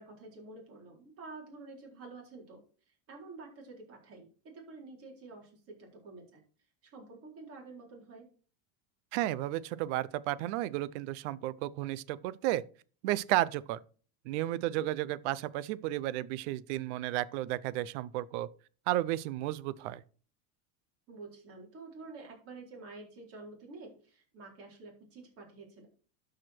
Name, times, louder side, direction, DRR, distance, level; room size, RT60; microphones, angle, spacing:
voice 1, 0.0-6.4 6.8-8.3 14.8-14.9 21.1-25.9, right 3 dB, 35° right, 4.0 m, -49 dB
voice 2, 9.1-12.6 13.0-13.8 14.3-18.5 18.9-20.0, right 15 dB, 65° right, 0.7 m, -33 dB
12.5 x 5.0 x 4.4 m
supercardioid pair, 155°, 38 cm